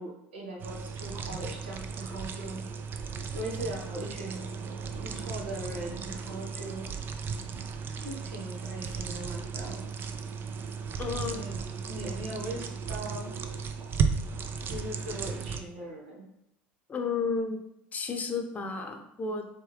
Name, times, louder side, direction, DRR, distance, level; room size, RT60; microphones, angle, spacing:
voice 1, 0.0-2.6 3.3-4.5 5.0-6.9 8.0-9.8 11.0-11.6 11.8-13.3 14.6-16.2, right 1 dB, 85° right, -2 dB, 1.3 m, -39 dB
sound 1, 0.6-15.6, right 5 dB, 40° right, 0.5 m, -35 dB
voice 2, 11.0-11.4 16.9-17.6 17.9-19.5, left 4 dB, 30° left, 5 dB, 0.7 m, -32 dB
4.6 x 3.4 x 3.4 m, 0.80 s
hypercardioid pair, 80°, 6 cm